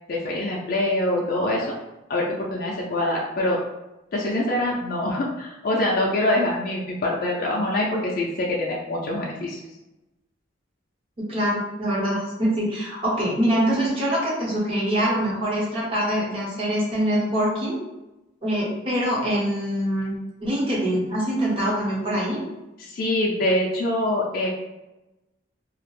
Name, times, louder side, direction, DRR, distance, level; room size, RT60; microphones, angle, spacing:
voice 1, 0.1-1.7 2.1-3.6 4.1-9.6 22.8-24.5, left 1 dB, 50° left, -3 dB, 0.3 m, -24 dB
voice 2, 11.3-17.8 18.4-20.1 20.4-22.4, equal, 30° right, -6 dB, 0.8 m, -24 dB
2.3 x 2.0 x 3.0 m, 0.99 s
head